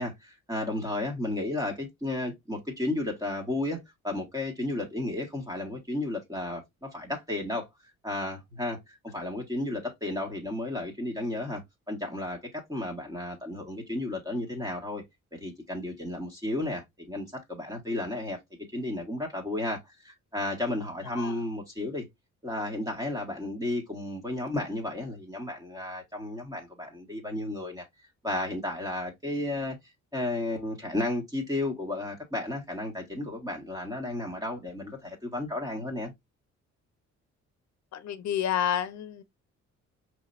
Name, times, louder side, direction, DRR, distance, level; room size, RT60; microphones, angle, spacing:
voice 1, 0.0-7.7 8.0-15.0 15.3-18.4 18.7-22.0 22.4-27.9 28.2-29.8 30.1-36.1, left 1 dB, 10° right, 1.6 m, -33 dB
voice 2, 21.1-21.4 37.9-39.2, left 10 dB, 65° left, 0.8 m, -30 dB
4.9 x 3.3 x 2.6 m
cardioid pair, 90°, 30 cm